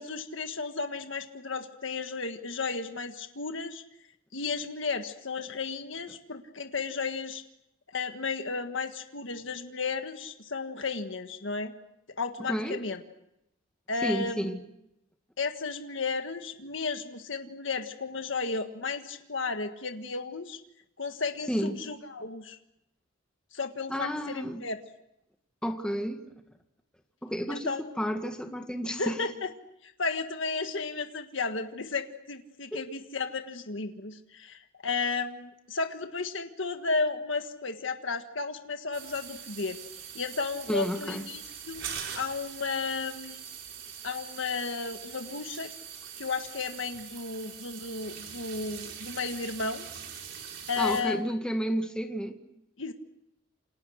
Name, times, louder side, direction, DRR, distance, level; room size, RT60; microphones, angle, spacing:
voice 1, 0.0-3.8 4.3-7.4 7.9-11.7 12.2-13.0 13.9-14.5 15.4-20.6 21.0-22.6 23.5-24.8 27.5-27.8 28.8-29.5 29.8-39.8 40.1-41.8 42.1-43.4 44.0-45.7 46.2-49.8 50.7-51.3 52.8-52.9, left 4 dB, 65° left, 1.7 m, -33 dB
voice 2, 12.5-12.8 14.0-14.6 21.5-21.8 23.9-24.7 25.6-26.2 27.2-27.7 28.0-29.2 32.7-32.8 40.7-41.2 50.8-52.4, equal, 5° left, 2.0 m, -31 dB
sound 1, 38.9-51.0, right 8 dB, 65° right, 5.1 m, -43 dB
29.0 x 27.5 x 6.5 m
head